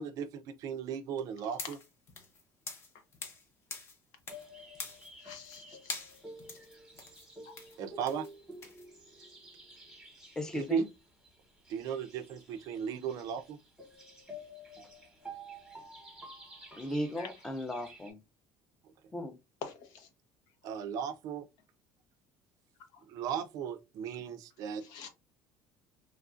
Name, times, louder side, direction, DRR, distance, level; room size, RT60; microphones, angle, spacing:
voice 1, 0.0-1.8 7.8-8.3 10.5-10.8 11.7-13.6 20.6-21.4 23.1-24.8, right 7 dB, 60° right, 0.4 m, -36 dB
sound 1, 1.5-3.4 3.7-4.5 4.7-5.6 5.9-8.9, left 4 dB, 40° left, 0.8 m, -44 dB
sound 2, 4.3-18.1, equal, 5° right, 1.0 m, -51 dB
voice 2, 5.2-6.0 17.2-17.3 19.6-20.1 24.8-25.1, left 6 dB, 80° left, 0.8 m, -46 dB
voice 3, 10.4-10.9 16.8-18.2 19.1-19.4, left 1 dB, 10° left, 0.5 m, -36 dB
3.1 x 2.4 x 2.4 m
cardioid pair, 135°, 7 cm